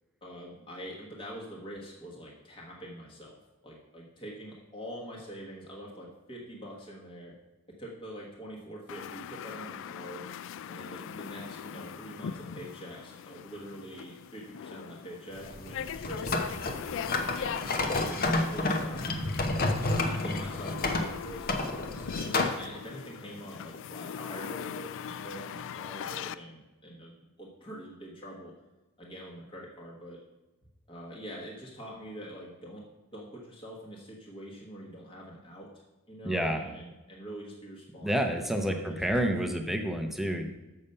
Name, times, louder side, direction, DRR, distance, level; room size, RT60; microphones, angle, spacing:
voice 1, 0.2-3.4 3.6-7.3 7.8-10.3 10.7-17.6 18.1-19.2 20.0-28.5 29.0-30.2 30.9-32.8 33.1-35.7 36.1-39.7, equal, 25° left, -4 dB, 1.3 m, -45 dB
sound 1, 8.9-26.3, left 8 dB, 60° left, 0.3 m, -40 dB
sound 2, 15.3-22.6, left 2 dB, 40° left, 0.9 m, -30 dB
voice 2, 36.2-36.6 38.0-40.4, right 1 dB, ahead, 4 dB, 0.7 m, -29 dB
7.1 x 6.7 x 5.4 m, 1.1 s
head